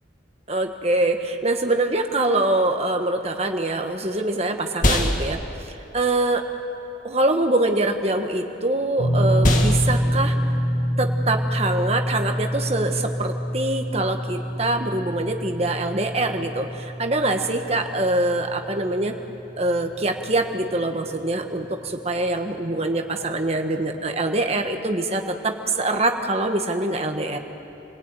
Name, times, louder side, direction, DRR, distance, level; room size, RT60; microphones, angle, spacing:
voice 1, 0.5-5.4 5.6-6.4 7.0-10.3 11.0-19.2 19.6-27.4, right 2 dB, 35° right, 4 dB, 1.5 m, -24 dB
sound 1, 3.5-13.1, left 1 dB, 45° left, 1.9 m, -29 dB
sound 2, 9.0-21.2 21.5-21.7 23.4-23.5, equal, 60° left, 7.3 m, -27 dB
28.5 x 18.0 x 9.1 m, 2.9 s
head